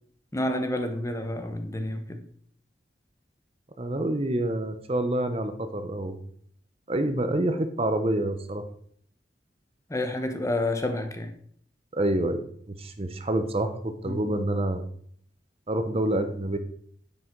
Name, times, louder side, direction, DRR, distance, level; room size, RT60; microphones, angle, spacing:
voice 1, 0.3-2.2 9.9-11.3 14.0-14.2, left 1 dB, 15° left, 6 dB, 1.1 m, -29 dB
voice 2, 3.8-6.2 6.9-8.7 11.9-14.8 15.7-16.6, right 1 dB, 35° right, 9 dB, 0.8 m, -27 dB
9.7 x 7.8 x 4.6 m, 0.62 s
head